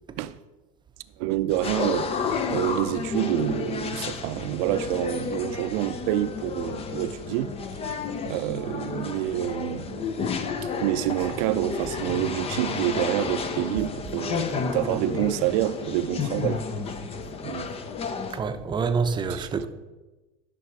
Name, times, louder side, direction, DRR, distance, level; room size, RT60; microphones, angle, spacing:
voice 1, 1.2-2.1 2.5-7.5 8.2-10.0 10.8-16.6 17.4-17.7 19.3-19.7, right 14 dB, 65° right, 0.6 m, -27 dB
sound 1, 1.5-18.4, left 5 dB, 30° left, 0.8 m, -31 dB
voice 2, 18.3-19.7, right 5 dB, 20° right, 0.8 m, -26 dB
11.5 x 6.2 x 4.7 m
supercardioid pair, 125°, 20 cm